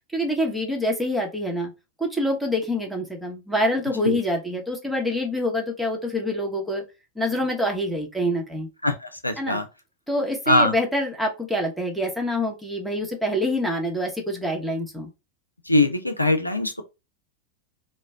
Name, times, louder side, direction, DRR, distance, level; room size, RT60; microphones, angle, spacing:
voice 1, 0.1-1.7 2.0-6.8 7.1-8.7 9.4-9.6 10.1-15.1, left 1 dB, ahead, 1.1 m, -26 dB
voice 2, 8.8-9.7 10.5-10.7 15.7-16.8, left 2 dB, 85° left, 0.5 m, -22 dB
3.0 x 2.2 x 3.6 m
figure-of-eight pair, 90°, 0 cm